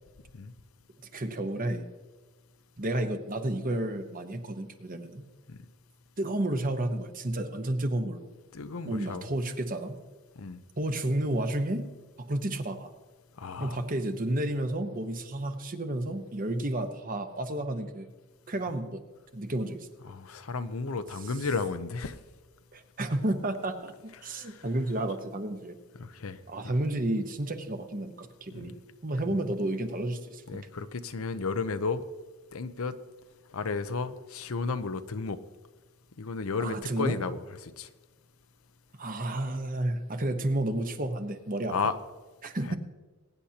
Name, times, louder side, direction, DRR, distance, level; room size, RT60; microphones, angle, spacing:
voice 1, 1.1-1.9 2.8-5.3 6.2-8.3 8.8-10.0 10.8-11.9 12.2-12.9 13.6-18.1 18.5-19.0 19.3-19.9 22.7-23.9 24.2-25.7 26.5-30.7 36.6-37.2 39.0-41.7 42.4-42.8, right 1 dB, 40° right, 7 dB, 1.0 m, -31 dB
voice 2, 8.5-9.3 10.4-10.6 13.4-13.8 20.0-22.2 24.2-24.7 26.0-26.8 28.5-28.7 29.3-29.4 30.5-32.1 32.5-33.0 33.5-35.4 36.2-37.9 41.7-41.9 42.6-42.8, left 4 dB, 70° left, 11 dB, 0.7 m, -33 dB
22.0 x 9.9 x 2.9 m, 1.3 s
head